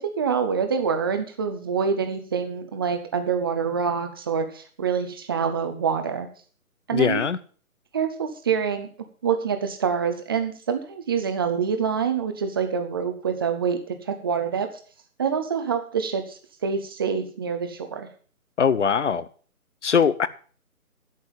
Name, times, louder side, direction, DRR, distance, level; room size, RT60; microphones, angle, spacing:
voice 1, 0.0-6.3 6.9-7.2 7.9-8.9 9.2-14.7 15.2-18.1, right 6 dB, 15° right, 7 dB, 0.9 m, -26 dB
voice 2, 6.9-7.4 18.6-19.3 19.8-20.3, left 6 dB, 50° left, 17 dB, 1.0 m, -21 dB
11.0 x 7.4 x 7.3 m, 0.42 s
figure-of-eight pair, 150°, 44 cm